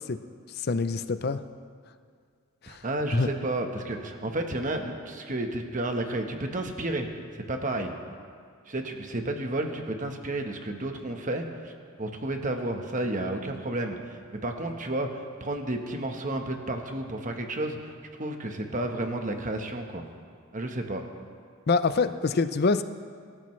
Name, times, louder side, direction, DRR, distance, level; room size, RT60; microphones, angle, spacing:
voice 1, 0.6-1.4 2.6-2.8 3.1-3.3 21.7-22.8, left 4 dB, 45° left, 11 dB, 0.5 m, -25 dB
voice 2, 2.7-7.9 8.7-11.7 12.0-20.0 20.5-21.0, right 1 dB, 35° right, 4 dB, 1.2 m, -32 dB
23.5 x 13.5 x 3.2 m, 2.1 s
head